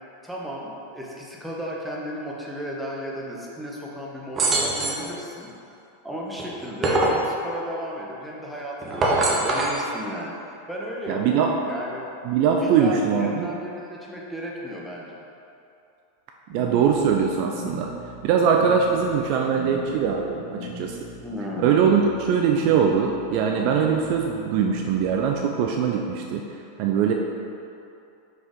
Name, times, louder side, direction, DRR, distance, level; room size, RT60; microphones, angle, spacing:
voice 1, 0.2-5.8 6.0-10.4 10.7-12.0 12.6-15.2 21.2-21.8, equal, ahead, -4 dB, 1.0 m, -34 dB
sound 1, 4.4-5.1 6.4-7.2 8.8-9.8, right 2 dB, 25° right, 0.9 m, -22 dB
voice 2, 11.1-11.5 12.2-13.5 16.5-17.9 18.2-21.0 21.6-26.4 26.8-27.1, right 7 dB, 45° right, 1 dB, 0.4 m, -22 dB
sound 2, 16.5-25.5, left 1 dB, 40° left, 1.3 m, -39 dB
5.4 x 5.1 x 3.8 m, 2.7 s
figure-of-eight pair, 90°, 0 cm